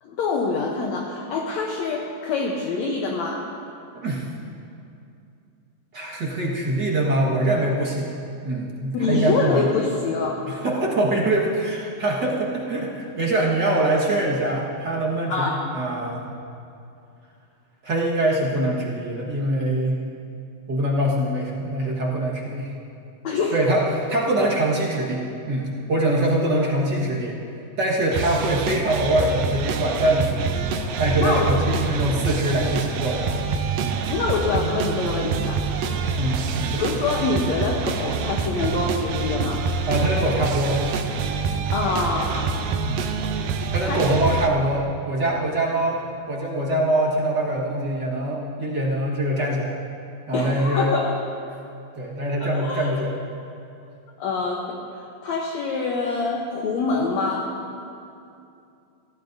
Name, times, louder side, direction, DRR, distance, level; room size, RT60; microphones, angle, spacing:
voice 1, 0.0-3.5 8.9-10.6 15.3-15.7 23.2-23.6 31.2-31.6 34.1-35.7 36.7-39.7 41.7-42.6 43.9-44.1 50.3-51.2 52.4-52.9 54.2-57.6, left 4 dB, 70° left, 0 dB, 1.8 m, -25 dB
voice 2, 3.9-4.3 5.9-8.1 8.4-9.6 10.5-16.3 17.8-20.0 20.7-22.7 23.5-27.4 27.8-30.6 31.0-33.3 33.8-34.0 36.2-36.8 39.9-40.8 42.8-43.0 43.7-46.0 46.3-49.8 50.3-50.9 51.9-53.1, right 1 dB, 45° right, -4 dB, 1.4 m, -23 dB
sound 1, 28.1-44.5, right 5 dB, 80° right, 2.4 m, -26 dB
23.5 x 15.5 x 2.7 m, 2.6 s
omnidirectional pair, 4.1 m